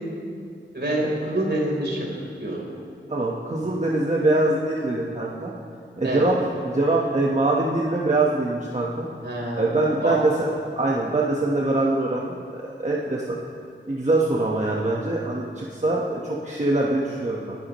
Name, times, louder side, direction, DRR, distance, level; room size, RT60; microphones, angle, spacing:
voice 1, 0.7-2.1 2.4-2.6 6.0-6.3 9.2-10.2, right 1 dB, 60° right, -3 dB, 3.9 m, -26 dB
voice 2, 3.1-5.5 6.0-9.1 9.5-10.3 10.8-13.4 13.9-17.6, right 2 dB, 35° right, -4 dB, 1.3 m, -23 dB
27.5 x 11.0 x 3.1 m, 2.3 s
wide cardioid pair, 65°, 20 cm